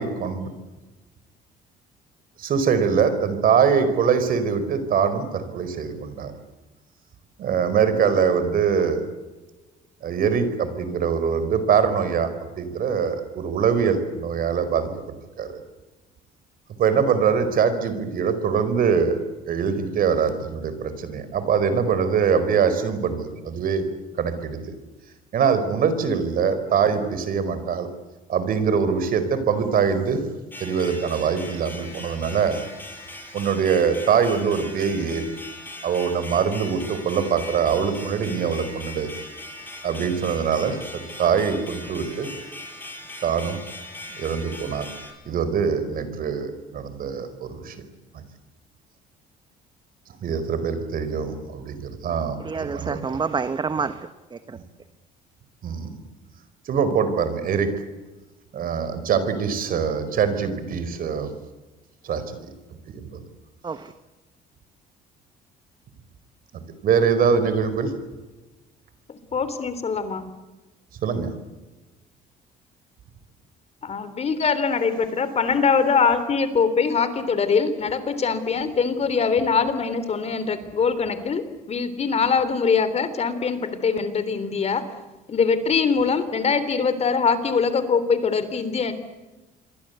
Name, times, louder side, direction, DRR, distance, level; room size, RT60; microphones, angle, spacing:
voice 1, 0.0-0.4 2.4-6.3 7.4-9.0 10.0-12.3 12.6-14.9 15.4-15.6 16.8-19.2 19.5-23.8 24.2-24.7 25.3-27.9 28.3-30.3 30.6-32.6 33.3-35.2 35.8-39.1 39.8-42.3 43.2-43.6 44.1-44.9 45.2-47.8 50.2-53.0 55.6-56.0 56.6-57.7 58.5-61.3 62.0-62.4 62.9-63.2 66.8-67.9 71.0-71.3, right 6 dB, 60° right, 11 dB, 4.8 m, -23 dB
sound 1, 30.5-45.1, left 1 dB, 10° left, 7.8 m, -40 dB
voice 2, 52.4-54.6 63.6-63.9, right 5 dB, 25° right, 11 dB, 1.3 m, -28 dB
voice 3, 69.1-70.2 73.8-84.8 85.3-88.9, left 5 dB, 40° left, 12 dB, 3.5 m, -23 dB
28.0 x 22.5 x 8.2 m, 1.1 s
cardioid pair, 110°, 17 cm